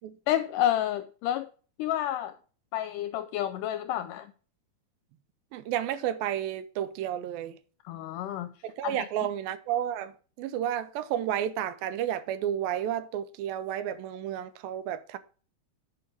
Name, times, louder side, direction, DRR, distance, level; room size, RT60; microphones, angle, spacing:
voice 1, 0.3-1.5 1.8-2.4 2.7-4.3 7.9-8.5 8.8-9.1, left 12 dB, 85° left, 1.8 m, -29 dB
voice 2, 5.5-7.6 8.6-10.1 10.4-15.2, right 11 dB, 80° right, 2.4 m, -31 dB
8.4 x 5.7 x 5.0 m
omnidirectional pair, 4.2 m